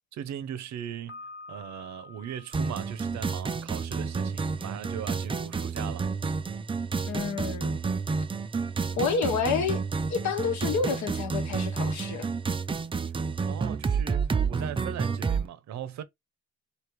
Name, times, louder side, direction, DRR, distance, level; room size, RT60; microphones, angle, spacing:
voice 1, 0.1-1.2 1.5-6.1 13.5-16.0, right 9 dB, 65° right, 0.7 m, -39 dB
Piano, 1.1-4.0, left 3 dB, 40° left, 1.2 m, -48 dB
sound 1, 2.5-15.5, right 5 dB, 20° right, 0.4 m, -30 dB
voice 2, 7.1-7.8 9.0-9.8 10.1-12.3, left 5 dB, 70° left, 1.1 m, -29 dB
3.3 x 2.8 x 4.5 m
cardioid pair, 90°, 30 cm